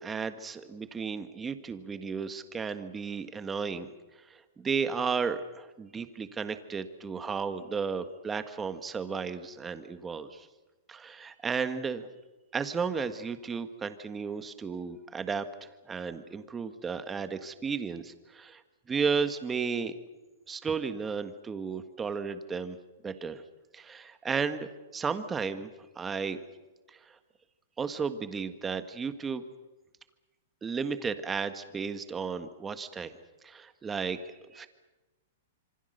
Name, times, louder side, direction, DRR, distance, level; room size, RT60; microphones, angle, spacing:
voice 1, 0.0-3.9 4.3-10.5 10.9-12.1 12.5-18.6 18.9-19.9 20.5-22.8 23.0-23.4 23.7-25.7 25.9-26.4 27.8-29.4 30.6-33.1 33.4-34.7, right 5 dB, 15° right, 10 dB, 1.5 m, -34 dB
27.0 x 25.0 x 6.7 m, 1.2 s
hypercardioid pair, 145°, 0 cm